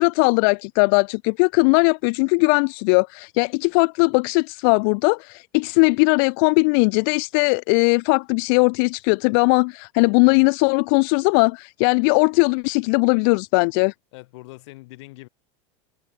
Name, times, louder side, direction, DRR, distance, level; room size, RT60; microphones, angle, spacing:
voice 1, 0.0-13.9, left 37 dB, 45° left, 0.4 m, -19 dB
voice 2, 14.1-15.3, left 22 dB, 60° left, 6.7 m, -42 dB
supercardioid pair, 170°, 16 cm